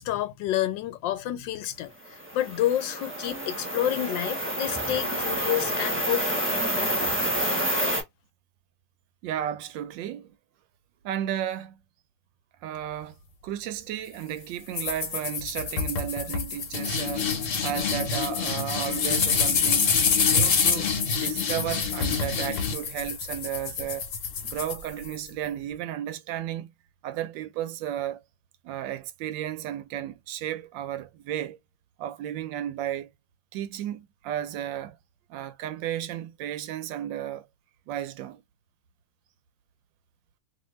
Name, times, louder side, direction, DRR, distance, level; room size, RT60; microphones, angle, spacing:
voice 1, 0.0-6.4 6.7-7.0, left 12 dB, 80° left, 1.3 m, -29 dB
sound 1, 2.1-8.0, right 1 dB, 10° right, 0.8 m, -28 dB
voice 2, 9.2-10.3 11.0-11.8 12.6-13.2 13.4-19.9 20.3-20.9 21.2-24.1 24.4-26.7 27.0-28.2 28.6-31.6 32.0-33.1 33.5-35.0 35.3-37.5 37.9-38.4, right 11 dB, 80° right, 1.3 m, -33 dB
sound 2, 14.7-25.3, left 6 dB, 55° left, 1.0 m, -26 dB
2.8 x 2.7 x 3.1 m
omnidirectional pair, 2.0 m